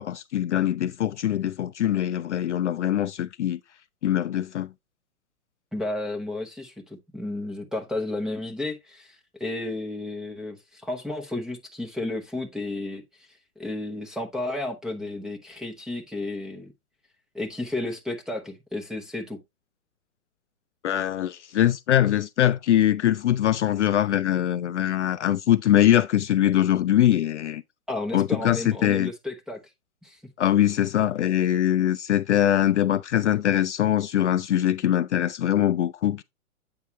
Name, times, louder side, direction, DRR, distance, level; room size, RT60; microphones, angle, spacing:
voice 1, 0.0-3.6 4.0-4.7 20.8-27.6 28.1-29.1 30.4-36.2, left 11 dB, 55° left, 0.5 m, -22 dB
voice 2, 5.7-16.7 17.3-19.4 27.9-29.6 30.0-30.2, left 2 dB, ahead, 0.8 m, -32 dB
8.7 x 5.5 x 3.1 m
figure-of-eight pair, 120°, 44 cm